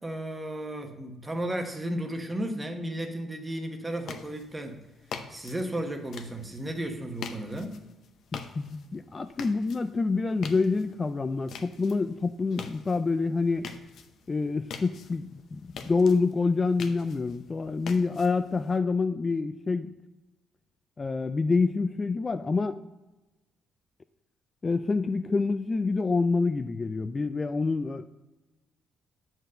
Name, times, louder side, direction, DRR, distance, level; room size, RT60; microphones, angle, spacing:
voice 1, 0.0-4.8 5.3-7.8, right 1 dB, 20° right, 4 dB, 1.2 m, -34 dB
sound 1, 3.9-18.8, left 6 dB, 70° left, 0.7 m, -45 dB
voice 2, 8.3-13.7 14.3-19.9 21.0-22.8 24.6-28.1, left 4 dB, 30° left, 10 dB, 0.3 m, -27 dB
8.0 x 4.5 x 6.3 m, 1.0 s
cardioid pair, 90°, 0 cm